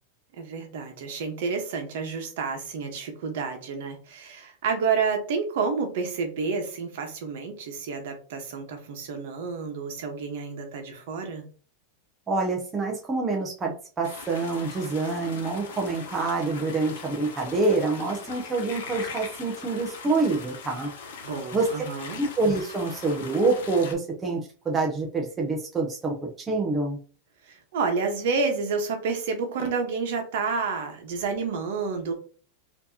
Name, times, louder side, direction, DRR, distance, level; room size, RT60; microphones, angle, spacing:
voice 1, 0.4-11.4 21.2-22.2 27.5-32.1, right 5 dB, 65° right, 4 dB, 1.1 m, -29 dB
voice 2, 12.3-20.9 21.5-21.7 22.2-27.0, right 3 dB, 15° right, -1 dB, 0.6 m, -26 dB
sound 1, 14.0-23.9, left 5 dB, 80° left, 1.0 m, -41 dB
4.4 x 2.8 x 2.7 m, 0.40 s
supercardioid pair, 165°, 0 cm